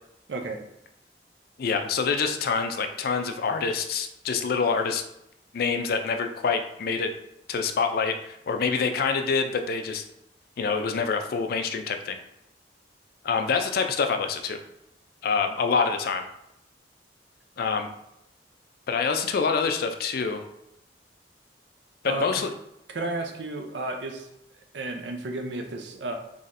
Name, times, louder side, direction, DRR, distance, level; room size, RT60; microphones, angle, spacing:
voice 1, 0.3-0.6 22.0-22.3 22.9-24.3 24.7-26.1, right 2 dB, 85° right, 4 dB, 0.6 m, -32 dB
voice 2, 1.6-5.0 5.5-7.1 7.5-10.0 10.6-12.2 13.2-14.6 15.2-16.3 17.6-17.9 18.9-20.4 22.0-22.5, left 5 dB, 55° left, 6 dB, 0.4 m, -26 dB
4.1 x 3.0 x 2.6 m, 0.82 s
head